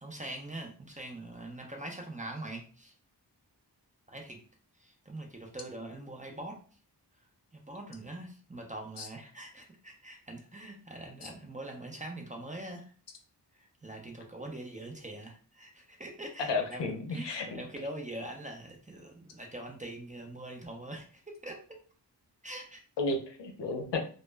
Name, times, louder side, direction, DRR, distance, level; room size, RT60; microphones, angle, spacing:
voice 1, 0.0-2.9 4.1-4.4 4.8-6.6 7.5-12.9 13.8-21.6 22.4-22.8, right 1 dB, 20° right, 1 dB, 0.5 m, -43 dB
voice 2, 16.4-17.5 23.0-24.0, left 3 dB, 75° left, 3 dB, 0.6 m, -32 dB
2.0 x 2.0 x 3.3 m, 0.40 s
wide cardioid pair, 85°, 42 cm